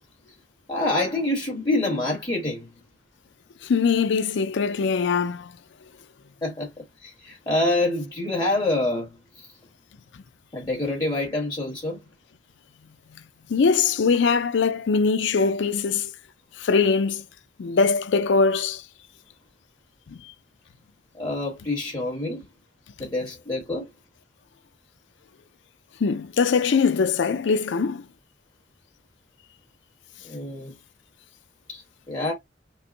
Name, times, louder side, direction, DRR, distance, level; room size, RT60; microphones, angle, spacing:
voice 1, 0.7-2.7 6.4-6.7 7.0-9.5 10.5-12.0 21.1-22.4 23.0-23.9 30.2-30.8 31.7-31.8 32.1-32.3, left 2 dB, 25° left, 1.4 m, -26 dB
voice 2, 3.6-5.5 13.5-16.1 16.6-17.2 17.6-18.8 20.1-20.2 26.0-28.1, left 5 dB, 80° left, 0.4 m, -22 dB
5.5 x 2.1 x 2.6 m
head